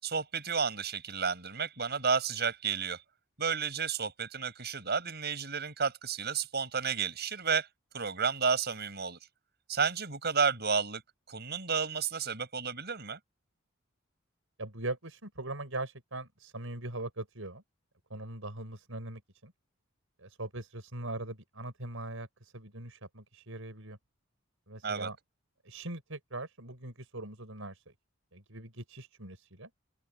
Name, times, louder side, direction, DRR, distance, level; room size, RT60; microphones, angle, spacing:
voice 1, 0.0-3.0 3.4-7.7 7.9-9.2 9.7-11.0 11.3-13.2 24.8-25.1, right 5 dB, 50° right, 6.6 m, -31 dB
voice 2, 14.6-17.6 18.1-19.5 20.2-24.0 24.7-25.2 25.6-27.9 28.3-29.7, right 2 dB, 75° right, 5.5 m, -41 dB
head